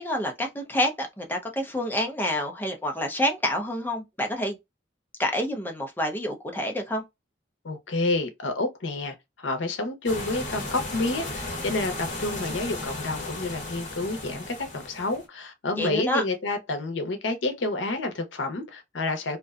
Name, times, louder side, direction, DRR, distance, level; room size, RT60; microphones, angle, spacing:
voice 1, 0.0-4.6 5.2-7.0 15.8-16.2, equal, 10° left, 0.5 m, -28 dB
voice 2, 7.6-19.4, left 2 dB, 80° left, 0.7 m, -29 dB
sound 1, 10.1-15.3, left 2 dB, 40° left, 0.9 m, -35 dB
2.5 x 2.1 x 2.4 m
head